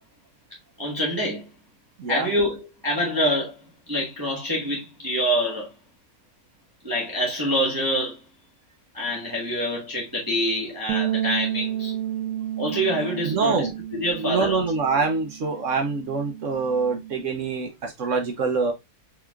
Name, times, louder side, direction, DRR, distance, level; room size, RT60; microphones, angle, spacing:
voice 1, 0.8-1.5 2.1-3.5 3.9-5.7 6.8-8.2 8.9-11.9 12.6-14.6, equal, 15° right, 1.2 m, -26 dB
sound 1, 10.9-17.1, right 11 dB, 80° right, 1.3 m, -31 dB
voice 2, 13.2-13.7 14.2-18.7, right 4 dB, 55° right, 1.1 m, -25 dB
4.7 x 3.7 x 2.3 m
omnidirectional pair, 1.7 m